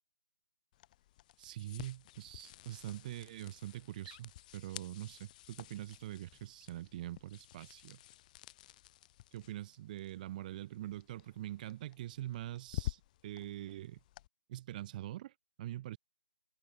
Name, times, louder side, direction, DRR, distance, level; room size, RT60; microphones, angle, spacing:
sound 1, 0.7-14.3, left 15 dB, 25° left, 4.9 m, -50 dB
voice 1, 1.4-8.0 9.3-14.0 14.5-16.0, right 14 dB, 25° right, 2.9 m, -44 dB
figure-of-eight pair, 150°, 10 cm